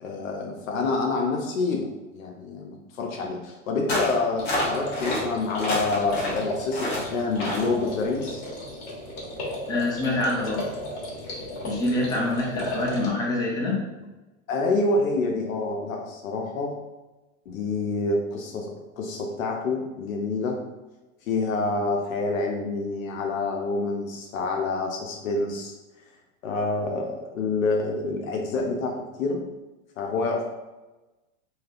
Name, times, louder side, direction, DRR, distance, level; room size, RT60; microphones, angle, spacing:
voice 1, 0.0-8.4 14.5-16.8 17.5-20.6 21.3-25.8 26.4-29.4 30.0-30.4, left 3 dB, 85° left, 1 dB, 0.6 m, -27 dB
sound 1, 3.9-4.2 4.4-5.2 5.6-6.4 6.7-7.0 7.4-7.7, left 1 dB, 30° left, 1.0 m, -28 dB
sound 2, 4.4-13.1, left 1 dB, 50° left, 1.3 m, -35 dB
voice 2, 9.7-10.7 11.6-13.8, left 2 dB, 10° left, -3 dB, 0.4 m, -26 dB
3.2 x 2.7 x 2.4 m, 1.1 s
hypercardioid pair, 130°, 39 cm